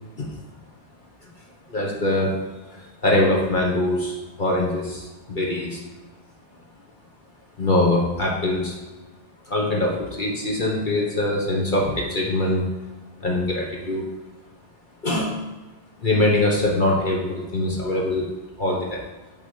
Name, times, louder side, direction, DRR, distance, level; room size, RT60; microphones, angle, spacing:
voice 1, 1.7-2.3 2.7-5.8 7.6-8.8 9.5-12.6 13.2-14.1 15.0-15.4 16.0-18.3 18.6-19.0, left 1 dB, 50° left, -2 dB, 1.4 m, -23 dB
7.3 x 4.1 x 5.0 m, 1.2 s
omnidirectional pair, 1.1 m